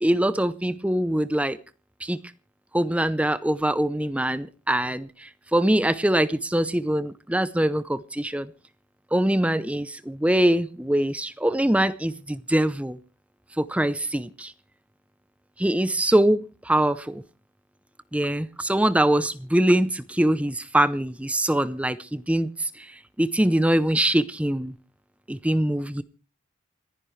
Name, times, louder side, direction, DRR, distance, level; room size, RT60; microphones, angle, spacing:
voice 1, 0.0-1.6 2.0-2.2 2.7-8.5 9.1-13.0 13.6-14.5 15.6-17.2 18.1-22.9 23.2-24.7 25.3-26.0, right 1 dB, 5° right, 0.6 m, -23 dB
29.0 x 10.5 x 3.2 m
head